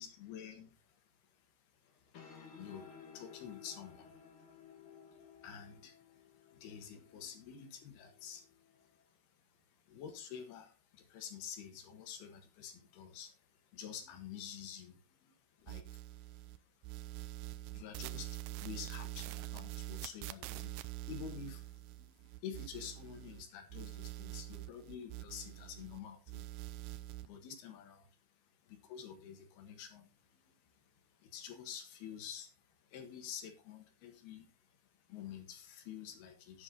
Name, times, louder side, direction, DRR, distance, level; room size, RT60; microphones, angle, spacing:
voice 1, 0.0-21.6 21.9-36.6, left 8 dB, 75° left, 6 dB, 3.4 m, -50 dB
sound 1, 1.9-9.0, left 6 dB, 45° left, 1.9 m, -57 dB
sound 2, 15.7-16.6 16.8-23.4 23.7-26.0 26.3-27.3, right 16 dB, 85° right, 2.7 m, -45 dB
10.5 x 8.4 x 3.9 m, 0.32 s
omnidirectional pair, 4.7 m